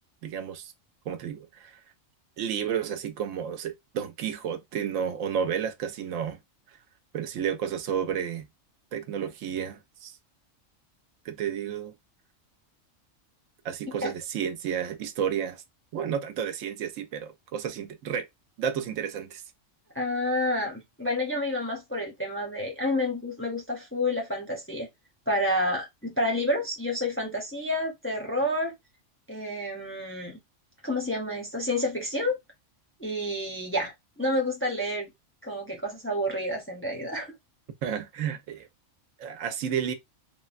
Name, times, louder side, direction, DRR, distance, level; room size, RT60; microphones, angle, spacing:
voice 1, 0.2-0.7 1.0-1.8 2.4-6.4 6.7-6.8 7.1-8.5 8.9-10.2 11.2-11.9 13.6-15.6 15.9-18.3 18.6-19.4 37.8-38.7 39.2-39.9, right 8 dB, 90° right, 1.0 m, -31 dB
voice 2, 19.9-24.9 25.3-28.7 29.3-30.4 30.8-32.4 33.0-33.9 34.2-35.1 35.4-37.3, left 1 dB, 15° left, 0.5 m, -29 dB
3.3 x 2.1 x 2.4 m
omnidirectional pair, 1.3 m